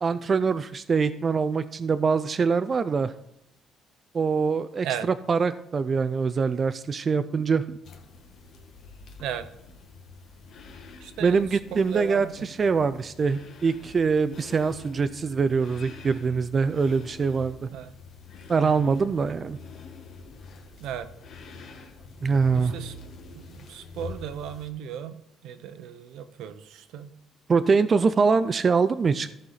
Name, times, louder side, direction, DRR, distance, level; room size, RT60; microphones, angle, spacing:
voice 1, 0.0-3.1 4.1-4.9 5.3-7.8 11.2-17.7 18.5-19.6 22.2-22.7 27.5-29.3, right 5 dB, 30° right, 12 dB, 0.3 m, -24 dB
sound 1, 7.8-24.7, left 4 dB, 55° left, 1.3 m, -46 dB
voice 2, 11.0-12.4 17.7-17.9 18.6-18.9 20.8-21.1 22.5-22.9 23.3-25.2 25.4-27.1, right 9 dB, 80° right, 11 dB, 0.8 m, -36 dB
14.0 x 5.6 x 4.0 m, 0.81 s
cardioid pair, 145°, 0 cm